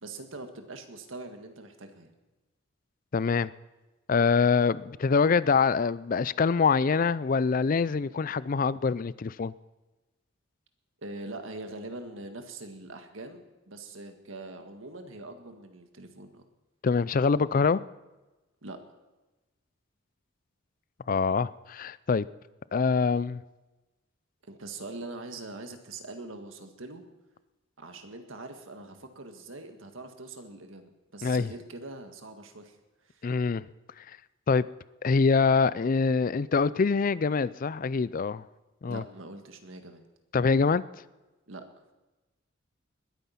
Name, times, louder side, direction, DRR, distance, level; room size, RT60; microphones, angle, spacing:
voice 1, 0.0-2.1 11.0-16.4 18.6-18.8 24.5-27.0 27.8-32.8 33.0-33.3 38.8-40.0 41.5-41.6, right 2 dB, 80° right, 6 dB, 1.7 m, -43 dB
voice 2, 3.1-3.5 4.1-9.5 16.8-17.8 21.1-22.3 22.7-23.4 31.2-31.5 33.2-33.6 34.5-34.6 35.0-38.4 38.8-39.0 40.3-40.8, left 5 dB, 45° left, 19 dB, 0.4 m, -24 dB
20.5 x 9.4 x 5.8 m, 1.1 s
head